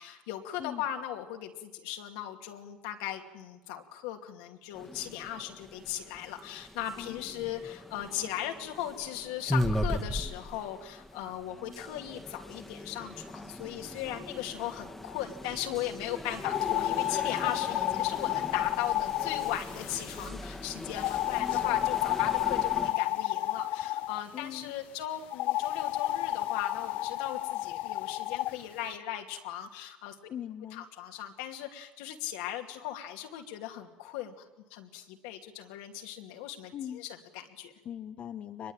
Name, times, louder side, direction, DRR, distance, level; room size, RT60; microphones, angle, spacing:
voice 1, 0.0-30.2 30.7-34.4 34.7-37.7, left 11 dB, 90° left, 4 dB, 2.6 m, -38 dB
sound 1, 4.7-22.9, left 1 dB, 5° left, 2.0 m, -39 dB
voice 2, 7.0-7.3 24.3-24.7 30.3-30.8 36.7-37.0 37.8-38.7, left 10 dB, 50° left, 7 dB, 1.3 m, -40 dB
sound 2, 16.4-20.3 20.9-24.2 25.3-28.5, left 15 dB, 70° left, 0.8 m, -31 dB
24.0 x 21.5 x 9.0 m, 1.0 s
supercardioid pair, 85°, 3 cm